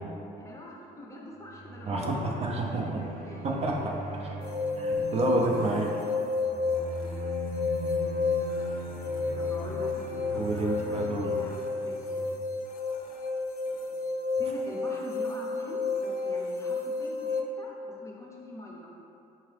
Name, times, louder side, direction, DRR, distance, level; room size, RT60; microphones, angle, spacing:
voice 1, 0.4-2.5 3.2-3.5 6.6-7.3 9.4-12.1 13.7-14.0 14.4-18.9, left 1 dB, 15° left, -2 dB, 0.6 m, -44 dB
sound 1, 1.3-12.3, right 1 dB, 80° right, 1.0 m, -39 dB
voice 2, 1.9-3.0 3.4-4.3 4.8-5.9 10.3-11.4, right 2 dB, 40° right, -1 dB, 0.5 m, -30 dB
sound 2, 4.4-17.4, left 4 dB, 65° left, 0.4 m, -31 dB
4.4 x 2.8 x 3.3 m, 2.7 s
cardioid pair, 110°, 17 cm